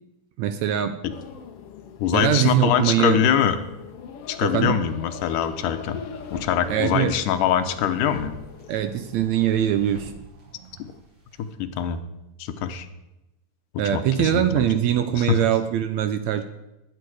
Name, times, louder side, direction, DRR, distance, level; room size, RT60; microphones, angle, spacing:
voice 1, 0.4-1.0 2.1-3.2 4.4-4.8 6.7-7.2 8.7-10.1 13.8-16.4, right 10 dB, 75° right, 9 dB, 1.8 m, -22 dB
sound 1, 1.1-10.1, left 6 dB, 60° left, 1.7 m, -41 dB
voice 2, 2.0-3.6 4.3-6.0 6.3-8.4 11.6-12.0 12.4-12.9 13.7-14.7 15.1-15.4, left 9 dB, 80° left, 9 dB, 2.4 m, -23 dB
sound 2, 6.1-11.5, right 1 dB, 40° right, 7.9 m, -48 dB
20.0 x 9.0 x 4.8 m, 0.95 s
omnidirectional pair, 3.7 m